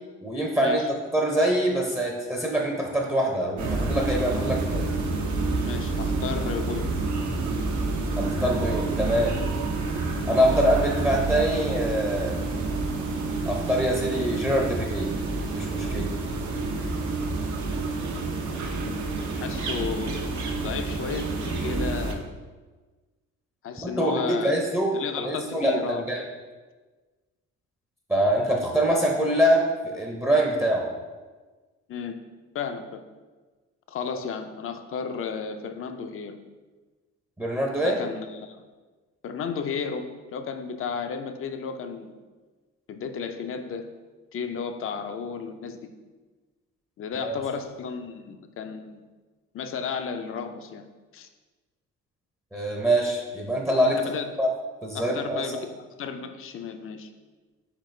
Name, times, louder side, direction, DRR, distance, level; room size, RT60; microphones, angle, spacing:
voice 1, 0.2-0.8 1.1-4.9 8.2-9.4 10.3-12.5 13.4-15.1 15.5-16.1 23.8-24.9 25.2-25.7 26.1-26.2 28.1-30.9 37.4-38.0 47.2-47.4 52.5-54.0 54.4-54.5 54.8-55.5, right 1 dB, 10° right, -1 dB, 0.6 m, -24 dB
sound 1, 3.6-22.1, right 3 dB, 70° right, 0.7 m, -28 dB
voice 2, 5.6-6.9 19.0-22.2 23.6-24.5 24.9-26.0 31.9-32.2 32.5-33.0 33.9-36.4 37.8-38.6 39.2-42.1 42.9-43.9 44.3-45.8 47.0-49.0 49.5-50.9 51.1-51.3 54.0-54.4 54.9-55.7 56.0-57.1, left 6 dB, 45° left, 8 dB, 0.5 m, -33 dB
4.1 x 4.0 x 3.2 m, 1.3 s
cardioid pair, 90°, 30 cm